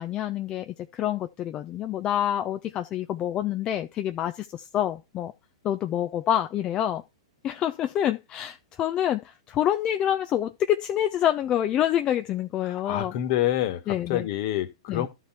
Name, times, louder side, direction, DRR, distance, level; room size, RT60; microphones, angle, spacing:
voice 1, 0.0-5.3 5.6-7.0 7.4-13.2 13.9-14.3 14.9-15.1, left 11 dB, 30° left, 0.7 m, -27 dB
voice 2, 12.8-13.8 14.1-15.1, left 12 dB, 50° left, 1.7 m, -26 dB
12.5 x 4.4 x 4.3 m
hypercardioid pair, 110°, 3 cm